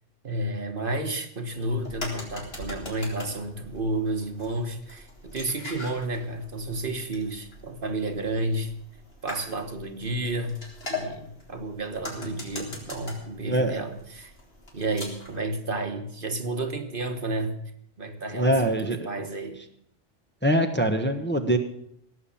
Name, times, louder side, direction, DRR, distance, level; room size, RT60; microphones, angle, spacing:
voice 1, 0.2-8.7 9.2-10.6 10.9-14.3 14.7-17.6 18.0-19.6, right 2 dB, 50° right, 7 dB, 1.5 m, -31 dB
sound 1, 1.6-15.4, left 2 dB, 55° left, 3.9 m, -41 dB
voice 2, 18.3-19.0 20.4-21.6, right 1 dB, 10° left, 5 dB, 1.1 m, -23 dB
17.5 x 7.4 x 8.6 m, 0.70 s
omnidirectional pair, 1.2 m